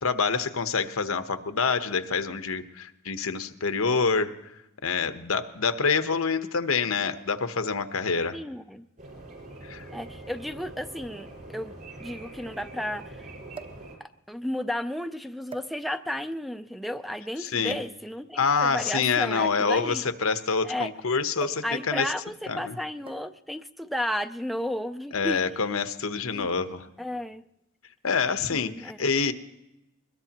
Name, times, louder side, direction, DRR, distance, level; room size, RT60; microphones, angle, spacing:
voice 1, 0.0-4.3 4.8-8.4 9.6-9.8 17.4-17.8 18.3-22.1 22.5-22.8 25.1-26.9 28.0-29.3, left 5 dB, 85° left, 9 dB, 1.0 m, -26 dB
voice 2, 8.3-8.9 9.9-13.3 14.0-20.0 20.6-20.9 21.6-25.4 26.3-26.5 27.0-27.5 28.5-29.0, left 1 dB, ahead, 10 dB, 0.5 m, -33 dB
sound 1, 9.0-14.0, right 2 dB, 45° right, 5.4 m, -44 dB
sound 2, 9.8-9.9 11.0-11.1 11.3-11.4 13.5-13.9 14.7-14.9 15.5-16.2 17.7-18.0 19.1-20.8 21.4-21.8 22.0-22.3 23.1-23.4 24.4-24.7, right 5 dB, 25° right, 1.0 m, -44 dB
22.5 x 21.0 x 2.9 m, 0.92 s
head